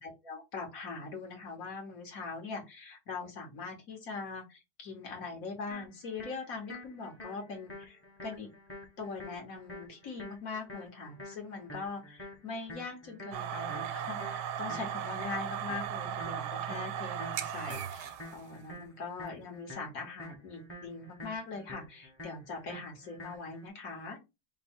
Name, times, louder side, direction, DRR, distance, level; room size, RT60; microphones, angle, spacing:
voice 1, 0.0-8.5 9.0-24.2, left 4 dB, 55° left, 2 dB, 1.6 m, -42 dB
sound 1, 5.7-23.7, left 2 dB, 10° left, 0.8 m, -48 dB
sound 2, 13.3-18.5, right 9 dB, 80° right, 1.2 m, -37 dB
5.2 x 2.2 x 4.4 m, 0.24 s
omnidirectional pair, 1.8 m